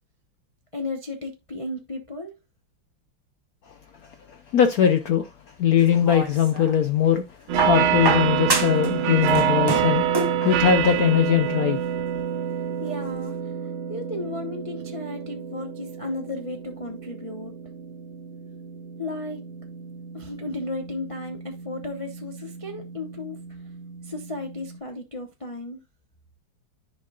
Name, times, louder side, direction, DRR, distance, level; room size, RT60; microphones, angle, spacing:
voice 1, 0.7-2.3 12.8-13.3 13.9-17.5 19.0-19.4 20.1-23.4 24.0-25.8, left 2 dB, 50° left, 0.4 m, -34 dB
voice 2, 4.3-5.3 5.6-7.2 7.6-11.8, left 8 dB, 70° left, 0.8 m, -21 dB
sound 1, 5.8-6.8 7.6-8.9 9.2-10.4 11.5-11.6, right 3 dB, 25° right, 0.4 m, -27 dB
sound 2, 7.5-24.8, right 8 dB, 85° right, 1.8 m, -28 dB
10.5 x 5.3 x 2.3 m
omnidirectional pair, 2.2 m